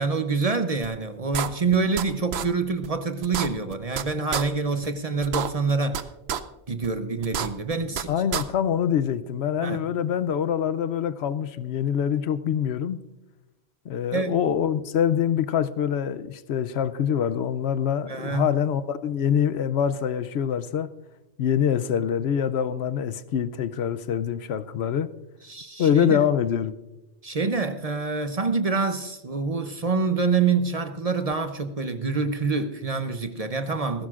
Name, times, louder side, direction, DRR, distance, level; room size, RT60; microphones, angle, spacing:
voice 1, 0.0-6.0 6.7-8.1 9.6-9.8 14.1-14.4 18.1-18.5 25.4-26.3 27.2-34.1, right 4 dB, 40° right, 0.7 m, -26 dB
sound 1, 0.8-0.9 1.3-2.0 2.3-2.5 2.8-2.9 3.2-4.0 4.3-4.4 4.8-4.9 5.2-6.0 6.3-6.4 6.8-6.9 7.2-8.0 8.3-8.4, right 8 dB, 70° right, 0.9 m, -28 dB
voice 2, 8.1-13.0 13.9-20.9 21.4-25.1 25.8-26.8, left 8 dB, 75° left, 0.8 m, -25 dB
19.5 x 15.5 x 2.5 m
omnidirectional pair, 1.2 m